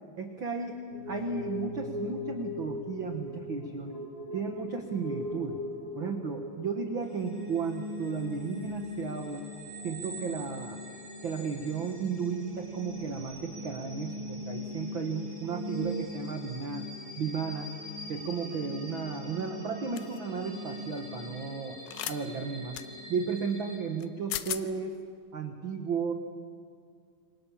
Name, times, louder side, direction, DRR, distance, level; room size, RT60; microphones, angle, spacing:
voice 1, 0.2-3.9 4.3-5.6 6.0-9.4 9.8-10.8 11.2-16.8 17.2-17.7 18.1-21.8 22.1-22.8 23.1-25.0 25.3-26.1, right 5 dB, 65° right, 4 dB, 1.2 m, -34 dB
sound 1, 0.9-9.4 9.7-10.3 10.6-10.7 11.2-11.3 12.3-14.4 14.8-14.9 15.1-16.0, left 1 dB, 35° left, 3.0 m, -40 dB
sound 2, 7.0-23.8, left 2 dB, 40° right, 6.5 m, -42 dB
sound 3, 20.0-20.2 21.9-22.2 22.7-22.9 24.0-24.1 24.3-24.6, left 13 dB, 85° left, 2.8 m, -35 dB
28.0 x 24.5 x 7.3 m, 2.3 s
omnidirectional pair, 4.4 m